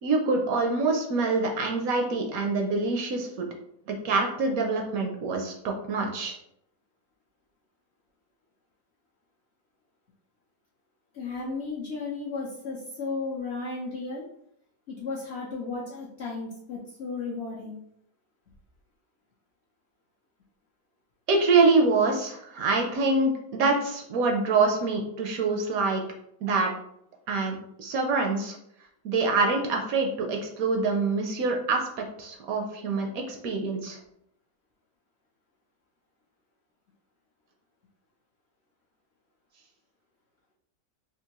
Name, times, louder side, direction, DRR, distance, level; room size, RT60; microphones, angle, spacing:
voice 1, 0.0-3.5 3.9-6.3 21.3-26.0 26.4-26.7 27.3-28.6 29.0-31.9 32.2-34.0, right 3 dB, 70° right, 2 dB, 0.9 m, -25 dB
voice 2, 11.1-14.2 14.9-17.8, left 4 dB, 70° left, -3 dB, 0.6 m, -34 dB
3.6 x 2.5 x 2.9 m, 0.74 s
omnidirectional pair, 1.8 m